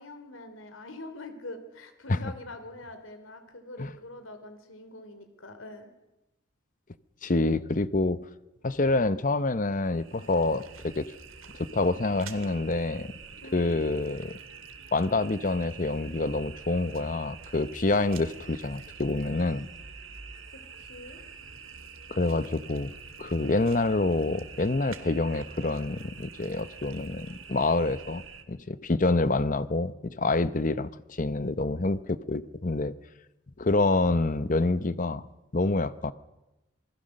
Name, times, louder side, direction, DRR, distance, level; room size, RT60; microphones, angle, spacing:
voice 1, 0.0-5.9 13.4-13.7 20.5-21.2, left 2 dB, 75° left, 8 dB, 3.1 m, -44 dB
voice 2, 7.2-8.2 8.6-11.1 11.6-13.1 13.5-14.3 14.9-19.7 22.1-22.9 23.2-28.2 28.5-32.9 33.6-35.2 35.5-36.1, left 2 dB, 40° left, 14 dB, 0.8 m, -27 dB
sound 1, 9.8-28.4, right 5 dB, 85° right, 2.1 m, -46 dB
27.0 x 20.5 x 6.6 m, 1.0 s
head